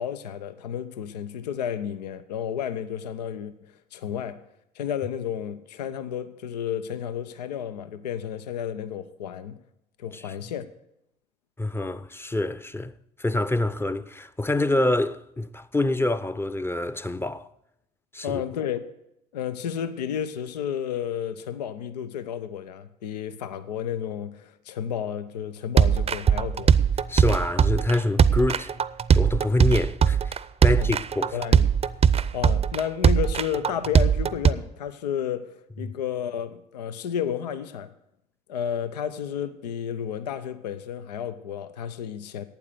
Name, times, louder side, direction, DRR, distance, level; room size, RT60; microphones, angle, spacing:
voice 1, 0.0-4.4 4.8-9.6 10.0-10.7 18.2-18.9 19.3-26.8 30.7-31.0 31.3-31.7 32.3-37.9 38.5-42.4, left 9 dB, 85° left, 0.6 m, -32 dB
voice 2, 11.6-12.9 13.2-17.5 18.1-18.4 27.1-28.7 29.1-31.4, left 2 dB, 10° left, 0.6 m, -26 dB
sound 1, 25.8-34.5, right 7 dB, 30° right, 0.6 m, -20 dB
11.5 x 9.0 x 6.7 m
hypercardioid pair, 55°, 20 cm